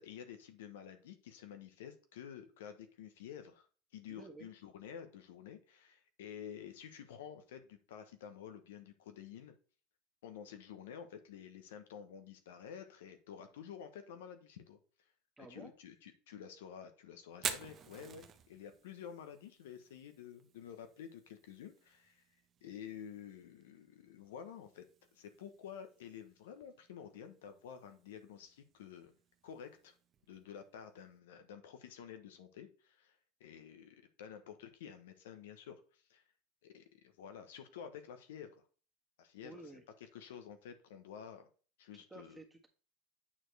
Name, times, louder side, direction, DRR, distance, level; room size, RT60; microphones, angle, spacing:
voice 1, 0.0-3.7 3.9-9.5 10.2-14.8 15.5-22.2 22.6-24.8 25.1-29.1 29.4-29.9 30.3-36.2 36.6-38.6 39.2-39.7 40.0-41.5 41.8-42.4, left 8 dB, 85° left, 7 dB, 1.0 m, -50 dB
voice 2, 4.1-4.5 15.4-15.7 39.4-39.8 41.9-42.7, right 2 dB, 10° right, 1 dB, 1.5 m, -52 dB
Fire, 17.3-31.2, right 8 dB, 35° right, 1.0 m, -51 dB
8.6 x 4.6 x 3.3 m, 0.39 s
supercardioid pair, 110°, 0 cm